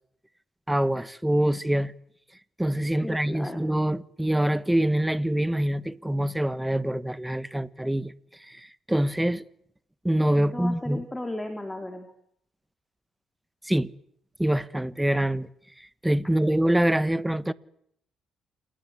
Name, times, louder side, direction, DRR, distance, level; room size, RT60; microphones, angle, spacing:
voice 1, 0.7-1.9 2.6-8.1 8.5-8.6 8.9-9.4 10.0-11.0 13.6-13.9 14.4-15.5 16.0-17.5, right 1 dB, 5° right, 1.2 m, -25 dB
voice 2, 3.0-3.6 10.4-12.1, left 1 dB, 10° left, 3.7 m, -35 dB
28.0 x 19.5 x 9.7 m
cardioid pair, 90°, 0 cm